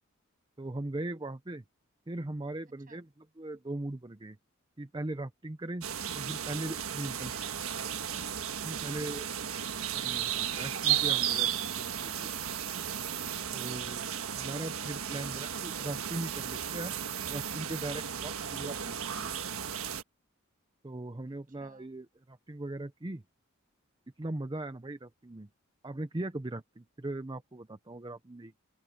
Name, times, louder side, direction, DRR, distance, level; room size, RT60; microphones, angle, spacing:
voice 1, 0.6-1.6 2.1-3.1 3.4-4.4 4.8-5.9 6.1-7.3 8.6-9.3 9.9-12.3 13.5-16.9 17.3-19.3 20.8-23.2 24.2-25.5 25.8-28.6, right 2 dB, 20° right, 0.7 m, -39 dB
sound 1, 5.8-20.0, right 9 dB, 75° right, 1.5 m, -34 dB
voice 2, 7.2-8.0 21.3-21.9, right 4 dB, 40° right, 8.0 m, -60 dB
open air
head